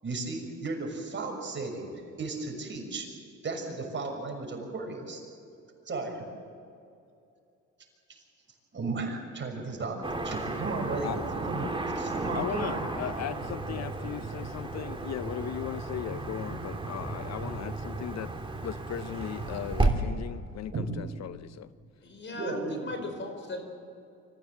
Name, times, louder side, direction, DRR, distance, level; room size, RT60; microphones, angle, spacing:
voice 1, 0.0-1.9 2.2-3.1 3.4-5.2 5.8-6.2 8.1-8.2 8.7-11.6 11.9-12.8 20.7-20.9 22.3-22.9, right 3 dB, 40° right, 1 dB, 6.3 m, -35 dB
Car passing by / Traffic noise roadway noise, 10.0-19.9, right 2 dB, 15° right, 3.1 m, -33 dB
voice 2, 12.3-18.3 18.6-21.7, left 11 dB, 60° left, 14 dB, 0.6 m, -37 dB
voice 3, 22.0-23.6, left 1 dB, 40° left, 6 dB, 4.9 m, -37 dB
25.5 x 15.5 x 7.8 m, 2.6 s
cardioid pair, 90°, 30 cm